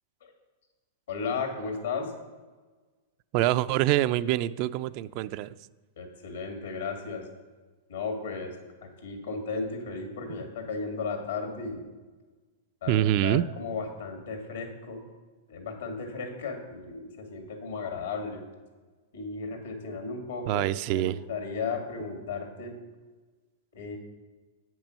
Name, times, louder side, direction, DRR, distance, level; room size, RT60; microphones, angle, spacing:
voice 1, 1.1-2.1 6.0-7.3 7.9-8.6 8.8-11.9 12.8-15.1 15.5-18.4 19.1-20.7 20.9-22.8 23.7-24.0, left 4 dB, 80° left, 4 dB, 2.2 m, -35 dB
voice 2, 3.3-5.5 12.9-13.4 20.5-21.2, right 14 dB, 50° right, 14 dB, 0.3 m, -25 dB
8.2 x 6.1 x 6.4 m, 1.3 s
hypercardioid pair, 120°, 0 cm